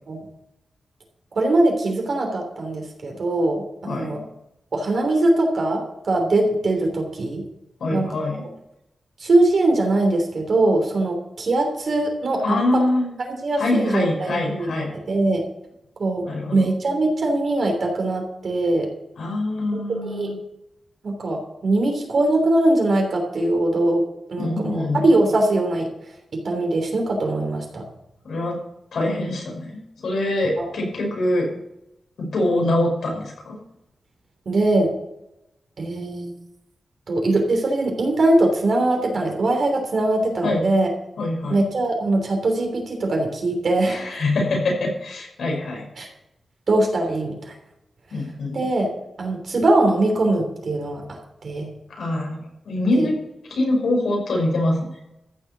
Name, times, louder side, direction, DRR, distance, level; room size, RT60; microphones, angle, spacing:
voice 1, 1.3-4.2 4.7-7.4 7.9-8.1 9.2-12.8 13.4-15.5 16.0-16.2 16.5-18.9 20.0-20.3 21.0-24.0 24.3-25.9 26.3-27.8 30.6-30.7 34.4-34.9 35.8-36.3 37.1-40.9 41.5-44.0 46.0-46.1 46.7-47.5 48.5-48.9 49.2-51.7 52.9-53.1, right 2 dB, 55° right, 2 dB, 3.2 m, -21 dB
voice 2, 3.8-4.2 7.8-8.4 12.4-13.1 13.6-14.9 16.2-16.7 19.2-20.4 24.4-25.0 28.2-28.6 28.9-31.5 32.2-33.6 40.4-40.6 41.2-41.6 43.8-45.9 48.1-48.6 51.9-52.4 52.7-53.2 53.5-54.9, left 2 dB, 80° left, 0 dB, 5.4 m, -24 dB
14.0 x 7.6 x 6.8 m, 0.86 s
wide cardioid pair, 155°, 0 cm